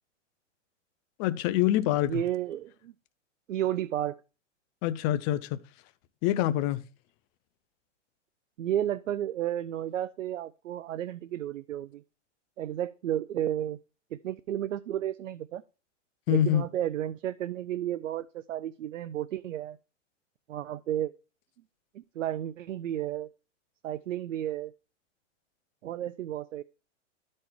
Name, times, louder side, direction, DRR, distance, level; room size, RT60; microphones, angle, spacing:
voice 1, 1.2-2.2 4.8-5.6 6.2-6.8 16.3-16.6, left 12 dB, 35° left, 0.6 m, -25 dB
voice 2, 2.0-2.9 3.5-4.2 8.6-12.0 12.6-13.8 14.1-15.6 16.3-19.8 20.5-21.1 21.9-23.3 23.8-24.7 25.8-26.6, right 11 dB, 90° right, 0.6 m, -32 dB
12.0 x 4.3 x 4.6 m
hypercardioid pair, 125°, 37 cm